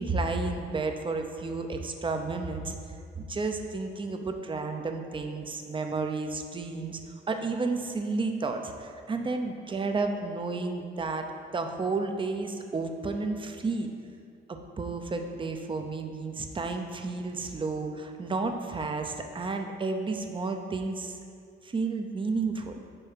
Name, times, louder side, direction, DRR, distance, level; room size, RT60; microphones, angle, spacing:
voice 1, 0.0-2.7 3.2-7.0 7.3-11.2 11.5-13.9 14.5-21.2 21.6-22.8, right 3 dB, 25° right, 5 dB, 0.6 m, -32 dB
5.4 x 4.5 x 5.6 m, 2.3 s
cardioid pair, 90°, 20 cm